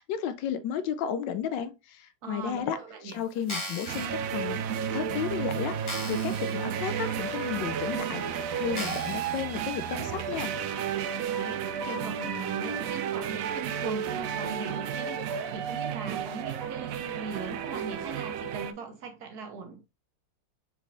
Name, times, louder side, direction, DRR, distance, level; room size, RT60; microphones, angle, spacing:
voice 1, 0.0-2.8 3.0-10.5, left 8 dB, 80° left, 1.2 m, -33 dB
voice 2, 2.2-3.2 11.2-19.8, right 4 dB, 60° right, 1.3 m, -40 dB
sound 1, 3.4-4.1 4.7-4.8 5.3-5.4 5.8-6.5 7.0-7.1 7.8-7.9 8.7-9.4 10.0-10.1, equal, 15° left, 1.4 m, -37 dB
sound 2, 3.9-18.7, right 7 dB, 80° right, 0.7 m, -32 dB
4.6 x 4.1 x 2.6 m
omnidirectional pair, 2.0 m